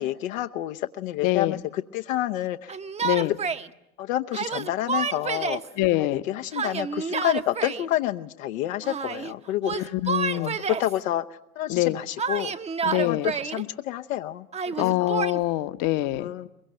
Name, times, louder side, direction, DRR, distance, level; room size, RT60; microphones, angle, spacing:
voice 1, 0.0-2.7 3.2-3.3 4.0-5.6 6.0-9.9 10.3-11.2 11.6-12.5 13.0-14.4 14.8-15.4 16.2-16.5, left 13 dB, 65° left, 6 dB, 0.9 m, -29 dB
voice 2, 1.2-1.6 3.0-3.3 5.8-6.2 9.7-10.6 11.7-12.0 12.8-13.3 14.8-16.3, left 16 dB, 45° left, 12 dB, 1.1 m, -25 dB
Yell, 2.7-3.7 4.3-5.7 6.5-7.9 8.8-9.3 9.6-10.9 12.2-13.6 14.5-15.4, right 6 dB, 15° right, 0.8 m, -29 dB
22.5 x 22.5 x 8.9 m, 0.86 s
hypercardioid pair, 100°, 42 cm